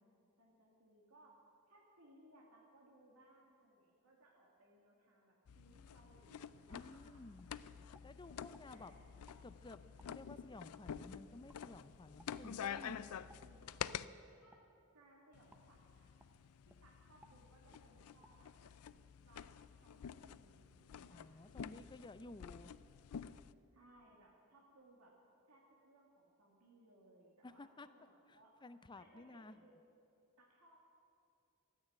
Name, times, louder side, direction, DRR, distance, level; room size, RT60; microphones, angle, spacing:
voice 1, 0.4-1.3 1.7-7.3 8.7-8.9 13.1-13.9 14.3-14.6 14.9-16.1 16.7-18.5 19.3-21.4 23.7-25.2 25.5-28.5 29.0-29.7 30.4-30.8, right 1 dB, 90° right, -2 dB, 2.2 m, -66 dB
sound 1, 5.5-14.1 15.3-23.5, left 8 dB, 85° left, 0.4 m, -49 dB
voice 2, 6.7-7.5 8.0-8.9 9.4-9.8 10.1-13.0 21.1-22.7 27.4-27.9 28.3-29.6, left 2 dB, 20° left, 12 dB, 0.5 m, -54 dB
sound 2, 7.4-7.5 7.9-8.7 9.2-9.4 10.0-10.1 10.7-10.9 11.5-11.6 12.2-12.3 12.7-12.9 13.3-13.5 13.9-14.0 14.5-14.7 15.5-15.7 16.2-16.3 16.7-16.8 17.2-17.4 17.7-17.9 18.2-18.3, right 1 dB, 5° right, 0.8 m, -64 dB
14.0 x 9.0 x 9.9 m, 2.5 s
head